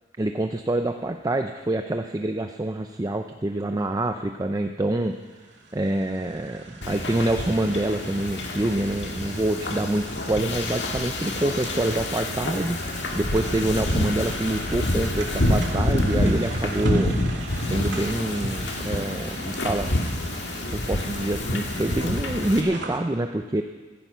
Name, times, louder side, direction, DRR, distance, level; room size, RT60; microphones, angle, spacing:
voice 1, 0.2-5.2 5.7-12.9 13.2-17.2 17.6-19.9 20.7-23.6, right 1 dB, 20° right, 6 dB, 0.6 m, -26 dB
sound 1, 5.0-23.0, right 3 dB, 75° right, 2.3 m, -40 dB
Wind / Ocean, 6.8-22.6, left 1 dB, 75° left, 1.8 m, -27 dB
15.0 x 14.5 x 5.6 m, 1.3 s
head